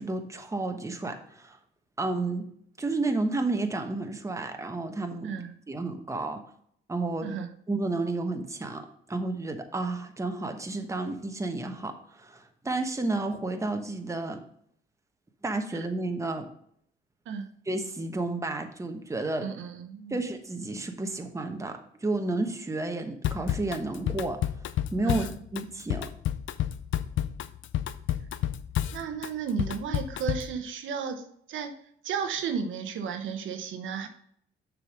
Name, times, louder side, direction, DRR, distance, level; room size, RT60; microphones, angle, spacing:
voice 1, 0.0-1.6 2.0-2.5 2.8-5.3 5.7-6.4 6.9-7.3 7.7-14.4 15.4-16.5 17.7-19.5 20.1-24.4 24.9-26.1, right 2 dB, 15° right, 5 dB, 1.1 m, -31 dB
voice 2, 19.4-20.2 25.0-25.3 28.9-31.7 32.0-34.1, right 6 dB, 75° right, 7 dB, 1.0 m, -33 dB
Drum kit / Drum, 23.2-30.6, left 11 dB, 75° left, 0.5 m, -30 dB
6.6 x 5.1 x 5.0 m, 0.67 s
cardioid pair, 90°, 20 cm